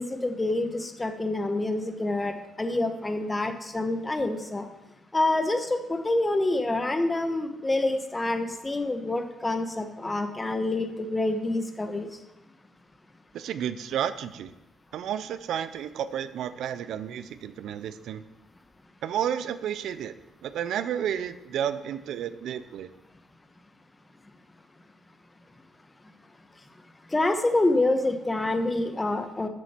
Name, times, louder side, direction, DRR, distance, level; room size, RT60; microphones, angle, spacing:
voice 1, 0.0-4.7 5.1-12.1 27.1-29.5, left 2 dB, 20° left, 7 dB, 1.2 m, -27 dB
voice 2, 13.3-14.5 14.9-18.2 19.0-20.1 20.4-22.9, right 9 dB, 75° right, 14 dB, 0.5 m, -31 dB
12.5 x 7.1 x 4.5 m, 0.98 s
cardioid pair, 90°, 0 cm